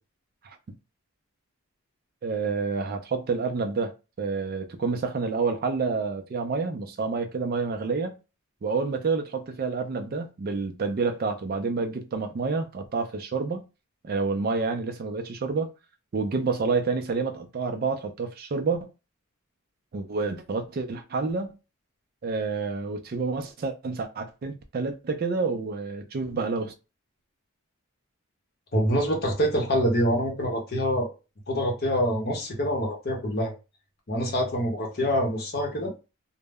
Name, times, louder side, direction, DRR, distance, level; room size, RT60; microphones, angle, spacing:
voice 1, 2.2-8.2 8.6-13.7 14.0-15.7 16.1-18.9 19.9-21.5 22.2-26.7, right 4 dB, 40° right, 0.3 m, -28 dB
voice 2, 28.7-31.1 31.5-33.5 34.1-35.9, equal, 45° left, 0.8 m, -25 dB
2.1 x 2.0 x 3.4 m
head